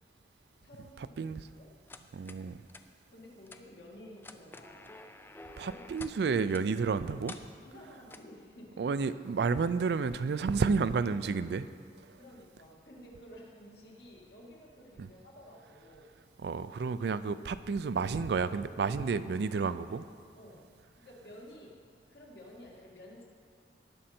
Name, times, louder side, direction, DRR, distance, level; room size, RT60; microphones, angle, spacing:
voice 1, 0.6-1.3 1.5-1.7 3.1-4.9 5.5-5.9 7.6-8.9 12.2-16.2 20.4-20.7 21.0-21.8 22.1-23.2, equal, 60° left, -2 dB, 2.0 m, -52 dB
sound 1, 1.9-2.4 2.7-2.8 3.5-3.6 4.2-6.2 6.5-6.7 7.3-7.5 8.1-8.3, left 2 dB, 10° left, 0.3 m, -49 dB
voice 2, 2.1-2.6 5.6-7.4 8.8-11.7 12.0-12.2 15.0-15.1 16.4-20.1, right 5 dB, 60° right, 13 dB, 0.3 m, -31 dB
18.5 x 6.4 x 4.3 m, 2.2 s
head